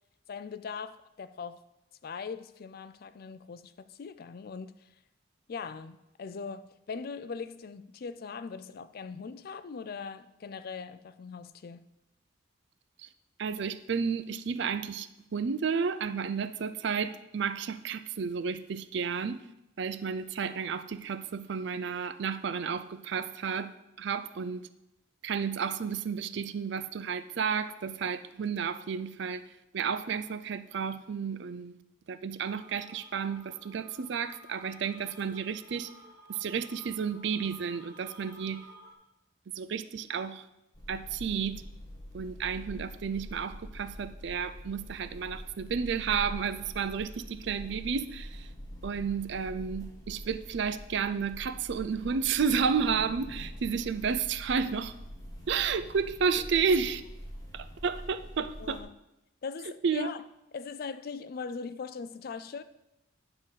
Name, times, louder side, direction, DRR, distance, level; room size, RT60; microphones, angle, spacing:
voice 1, 0.3-1.6 2.0-4.9 5.5-11.9 58.4-58.9 59.4-60.2 60.5-62.6, left 5 dB, 50° left, 0.4 m, -40 dB
voice 2, 13.4-19.4 19.8-23.7 24.0-24.7 25.2-29.4 29.7-31.7 32.1-35.9 36.3-38.6 39.5-40.5 40.9-41.6 42.1-48.5 48.8-54.9 55.5-57.0 57.5-58.8 59.8-60.1, right 6 dB, 60° right, 0.4 m, -32 dB
sound 1, 32.4-38.9, right 1 dB, 40° right, 1.2 m, -53 dB
sound 2, 40.7-58.8, equal, 20° left, 1.3 m, -45 dB
9.8 x 3.8 x 6.4 m
head